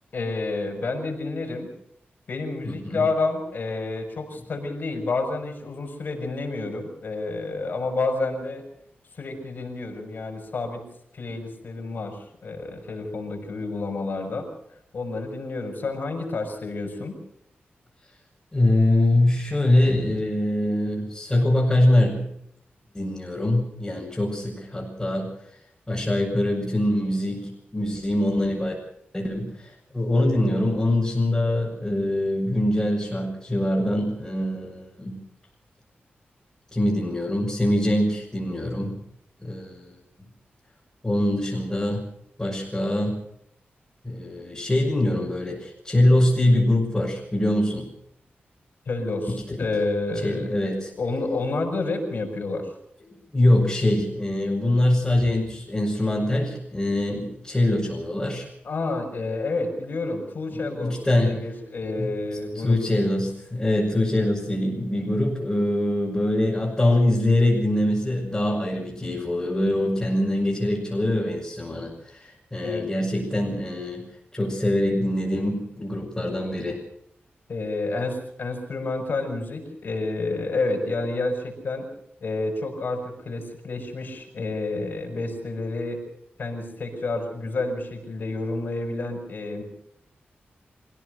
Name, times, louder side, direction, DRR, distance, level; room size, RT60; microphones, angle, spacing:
voice 1, 0.1-1.7 2.3-8.6 9.1-10.8 11.1-14.5 14.9-17.1 48.9-50.5 51.0-52.7 58.6-62.8 72.6-72.9 77.5-81.9 82.2-86.0 86.4-89.6, left 3 dB, 55° left, 3 dB, 6.2 m, -29 dB
voice 2, 2.6-3.0 18.5-22.2 22.9-25.3 25.9-28.7 29.1-35.1 36.7-39.0 39.4-39.9 41.0-42.1 42.4-43.2 44.0-47.9 49.3-49.6 50.2-50.9 53.1-58.5 60.8-61.4 62.0-62.1 62.5-74.1 74.3-76.8, left 1 dB, 15° left, -5 dB, 6.2 m, -23 dB
26.0 x 17.0 x 6.7 m, 0.74 s
wide cardioid pair, 135°, 4 cm